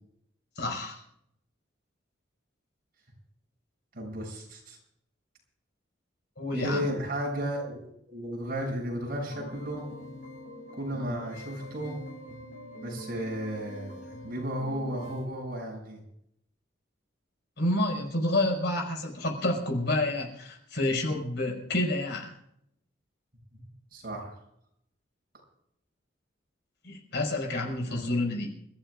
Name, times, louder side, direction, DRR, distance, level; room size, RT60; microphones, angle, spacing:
voice 1, 0.6-1.0 6.4-6.8 17.6-22.3 26.8-28.5, left 1 dB, 65° left, 1 dB, 5.4 m, -29 dB
voice 2, 3.9-4.8 6.5-9.9 10.7-12.1 12.8-16.0 23.5-23.6 23.9-24.3 27.8-28.0, equal, 55° right, -2 dB, 7.6 m, -34 dB
sound 1, 9.3-15.3, equal, 45° left, 7.8 m, -44 dB
29.0 x 15.0 x 2.5 m, 0.74 s
head